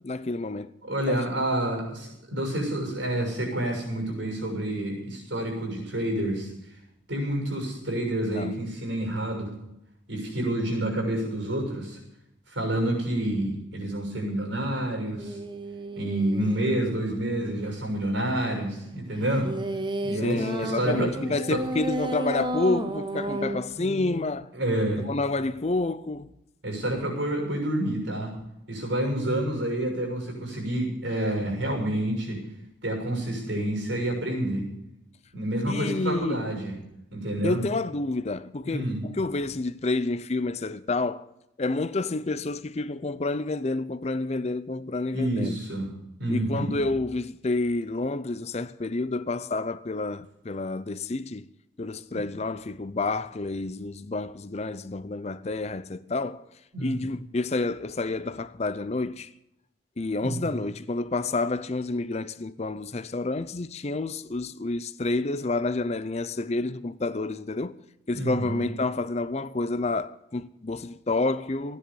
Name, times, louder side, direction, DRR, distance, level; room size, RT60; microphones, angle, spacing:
voice 1, 0.0-0.7 1.1-1.2 8.3-8.7 20.2-24.5 25.0-26.3 35.7-36.4 37.4-41.3 41.6-45.6 46.3-51.5 51.8-56.4 56.8-59.3 60.0-67.7 68.1-71.8, left 2 dB, 35° left, 0.5 m, -29 dB
voice 2, 0.8-6.5 7.1-9.5 10.1-12.0 12.5-15.4 15.9-19.5 20.0-21.6 24.5-25.0 26.6-28.3 28.7-32.4 32.8-34.7 35.3-36.8 37.1-37.6 38.6-39.0 45.1-45.9 46.2-46.7 52.1-52.2 56.7-57.0 60.2-60.5 68.1-68.6, right 1 dB, 75° right, 6.7 m, -28 dB
sound 1, 15.2-16.9 19.2-24.2, right 1 dB, 25° right, 0.8 m, -33 dB
15.5 x 10.0 x 7.0 m
head